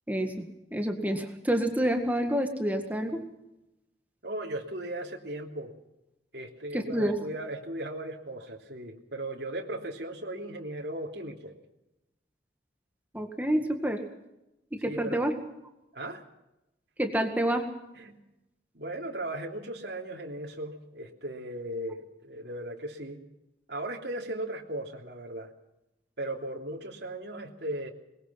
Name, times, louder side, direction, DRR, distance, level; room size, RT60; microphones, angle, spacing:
voice 1, 0.1-0.5 0.7-3.2 6.7-7.2 13.1-14.0 14.7-15.3 17.0-17.6, right 1 dB, 10° right, 4 dB, 1.9 m, -28 dB
voice 2, 4.2-5.7 6.3-11.5 14.8-15.3 15.9-16.2 17.9-18.2 18.7-23.2 23.7-25.5 26.2-27.9, right 1 dB, 70° right, 0 dB, 3.2 m, -37 dB
22.0 x 21.5 x 5.8 m, 0.91 s
head